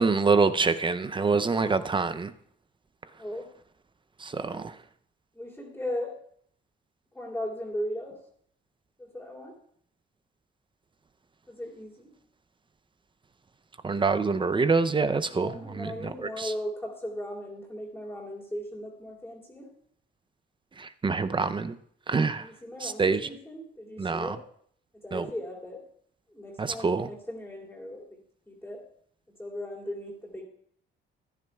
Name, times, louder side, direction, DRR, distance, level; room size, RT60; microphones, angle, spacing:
voice 1, 0.0-2.3 4.2-4.7 13.8-15.9 16.2-16.5 20.8-21.8 22.1-22.5 22.8-23.2 24.0-24.4 25.1-25.3 26.6-27.1, right 4 dB, 25° right, 12 dB, 0.5 m, -26 dB
voice 2, 5.3-6.1 7.1-8.2 9.0-9.5 11.5-12.1 15.3-19.7 22.4-24.4 24.9-25.8 26.3-28.2 28.5-28.8 29.4-30.4, left 1 dB, 5° left, -7 dB, 3.1 m, -37 dB
15.5 x 10.5 x 2.3 m, 0.64 s
cardioid pair, 90°, 20 cm